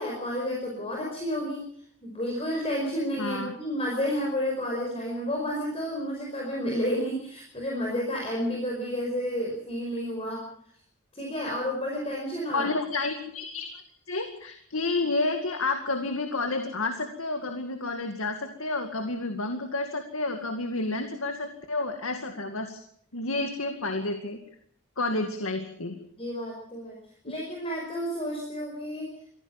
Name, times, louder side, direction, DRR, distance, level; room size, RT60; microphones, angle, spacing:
voice 1, 0.0-1.6 2.0-10.4 11.1-12.6 26.2-27.0 27.2-29.1, equal, 25° left, -1 dB, 5.2 m, -31 dB
voice 2, 3.2-3.5 12.5-13.7 14.1-22.8 23.1-24.4 25.0-26.0 27.3-27.4, left 2 dB, 80° left, 6 dB, 2.2 m, -30 dB
23.5 x 16.0 x 7.2 m, 0.65 s
head